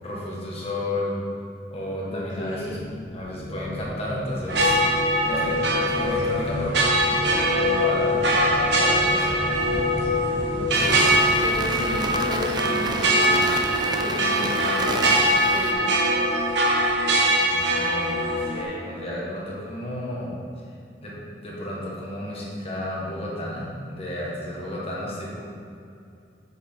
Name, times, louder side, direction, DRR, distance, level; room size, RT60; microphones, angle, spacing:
voice 1, 0.0-1.2 1.7-2.8 3.1-4.8 5.2-6.8 7.0-9.5 17.4-20.4 21.0-25.4, left 1 dB, 35° left, -5 dB, 1.6 m, -32 dB
sound 1, 2.0-13.6, equal, 75° left, 1.2 m, -39 dB
voice 2, 2.1-2.9 10.6-13.5 14.0-15.2 15.5-16.0, left 1 dB, 50° left, -4 dB, 0.7 m, -34 dB
sound 2, 4.5-18.6, equal, 65° right, 1.1 m, -22 dB
sound 3, 10.7-15.7, right 3 dB, 25° right, 0.4 m, -30 dB
7.4 x 6.4 x 3.7 m, 2.5 s
head